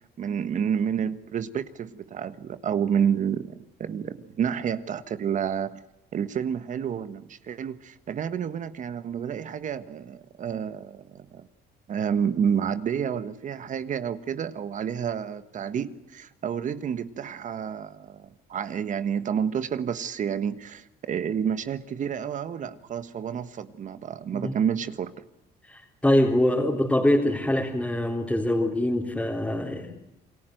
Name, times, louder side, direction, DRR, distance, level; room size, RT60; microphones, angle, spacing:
voice 1, 0.0-5.8 6.1-11.5 11.9-25.1, right 8 dB, 50° right, 12 dB, 1.5 m, -29 dB
voice 2, 25.7-29.9, left 1 dB, 5° left, -4 dB, 3.9 m, -24 dB
28.5 x 21.5 x 7.9 m, 0.88 s
cardioid pair, 110°, 17 cm